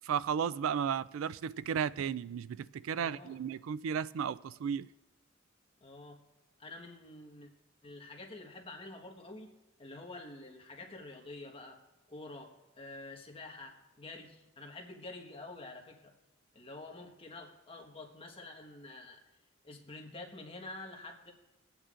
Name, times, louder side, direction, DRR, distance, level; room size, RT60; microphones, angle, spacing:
voice 1, 0.0-4.9, right 7 dB, 75° right, 0.3 m, -34 dB
voice 2, 3.0-3.4 5.8-6.2 6.6-7.5 7.8-9.5 9.8-11.8 12.1-16.1 16.5-19.2 19.6-21.3, left 2 dB, 30° left, 1.4 m, -48 dB
22.5 x 8.9 x 2.5 m
head